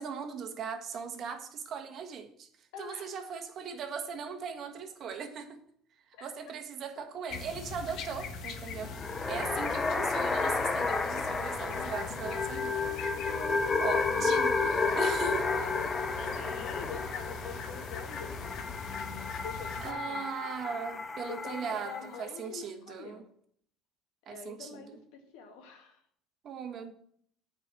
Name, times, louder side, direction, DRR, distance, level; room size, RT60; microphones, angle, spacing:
voice 1, 0.0-2.5 2.8-5.6 6.2-8.9 9.3-13.0 13.8-14.5 14.9-15.5 19.8-23.2 24.3-24.7 26.4-26.9, right 6 dB, 45° right, 1.4 m, -39 dB
voice 2, 2.7-3.4 6.2-6.3 7.0-7.1 13.2-15.0 15.4-20.2 21.3-23.3 24.3-26.0, left 6 dB, 80° left, 2.1 m, -46 dB
sound 1, 7.3-19.9, left 5 dB, 55° left, 1.2 m, -42 dB
sound 2, 8.8-22.2, left 4 dB, 20° left, 0.8 m, -32 dB
8.9 x 5.0 x 7.4 m
cardioid pair, 115°, 0 cm